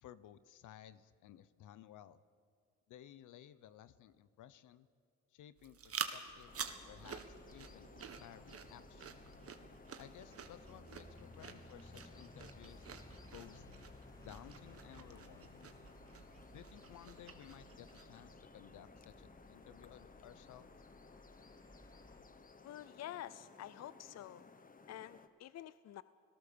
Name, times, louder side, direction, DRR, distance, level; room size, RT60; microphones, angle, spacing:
voice 1, 0.0-2.2 2.9-4.9 5.3-9.1 10.0-12.9 13.3-13.8 14.2-15.7 16.5-20.7, left 11 dB, 80° left, 16 dB, 1.0 m, -57 dB
sound 1, 5.6-18.3, right 7 dB, 50° right, 1.8 m, -49 dB
sound 2, 6.3-22.2, left 1 dB, 10° left, 2.0 m, -60 dB
sound 3, 6.5-25.3, left 4 dB, 30° left, 1.2 m, -60 dB
voice 2, 22.6-24.4 24.9-26.0, left 12 dB, 60° left, 16 dB, 0.6 m, -48 dB
26.0 x 18.0 x 7.0 m, 2.1 s
cardioid pair, 90°, 30 cm